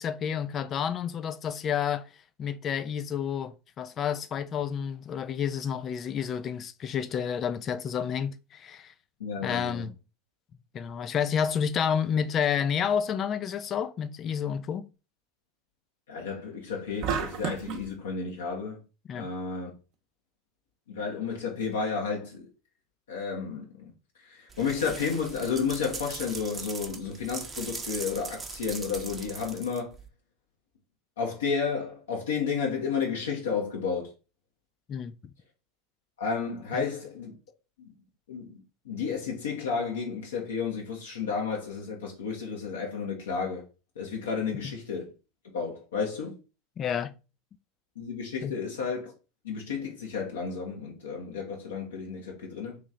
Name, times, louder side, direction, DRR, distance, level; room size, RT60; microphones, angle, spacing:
voice 1, 0.0-2.1 2.4-8.9 9.4-9.9 10.7-14.9 19.1-19.3 34.9-35.1 36.7-36.9 46.8-47.1 48.4-48.5, left 8 dB, 35° left, 0.4 m, -30 dB
voice 2, 9.2-9.9 16.1-18.8 19.1-19.7 20.9-22.5 23.1-23.9 24.2-29.9 31.2-34.1 36.2-37.4 37.8-37.9 38.3-43.6 44.0-45.1 45.5-46.4 48.0-49.1 49.4-52.8, left 5 dB, 75° left, 0.9 m, -32 dB
sound 1, 17.0-17.9, right 6 dB, 50° right, 0.8 m, -31 dB
sound 2, 24.5-30.1, right 4 dB, 20° right, 0.8 m, -40 dB
3.1 x 3.1 x 3.7 m
figure-of-eight pair, 85°, 0 cm